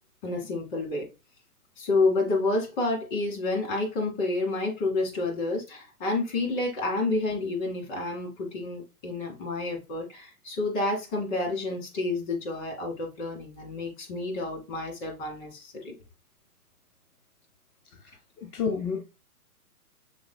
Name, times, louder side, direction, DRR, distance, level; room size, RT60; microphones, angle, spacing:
voice 1, 0.2-1.1 1.8-15.9, left 2 dB, 35° left, 1.9 m, -29 dB
voice 2, 18.0-19.0, left 6 dB, 70° left, 0.9 m, -31 dB
5.9 x 3.3 x 2.2 m
hypercardioid pair, 135°, 46 cm